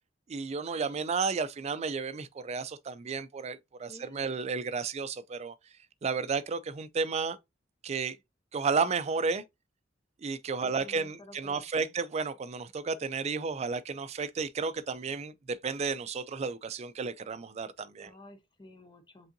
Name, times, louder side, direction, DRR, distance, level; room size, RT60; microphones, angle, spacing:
voice 1, 0.3-5.5 6.0-7.4 7.8-8.2 8.5-9.4 10.2-18.1, right 5 dB, 35° right, 0.4 m, -32 dB
voice 2, 3.9-4.4 10.6-11.9 18.0-19.3, left 1 dB, 25° left, 0.9 m, -52 dB
5.4 x 3.6 x 2.6 m
head